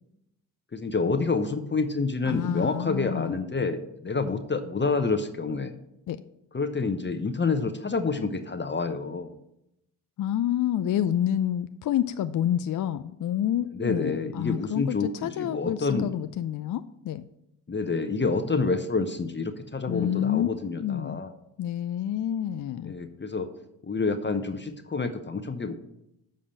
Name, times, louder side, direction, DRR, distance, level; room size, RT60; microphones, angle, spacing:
voice 1, 0.7-5.7 6.5-9.4 13.7-16.1 17.7-21.3 22.8-23.5 23.8-25.7, left 4 dB, 25° left, 8 dB, 0.9 m, -28 dB
voice 2, 2.2-3.4 6.1-6.2 10.2-17.3 19.9-21.2 21.6-22.9, left 10 dB, 45° left, 11 dB, 0.5 m, -28 dB
7.4 x 5.0 x 7.0 m, 0.83 s
hypercardioid pair, 50°, 45 cm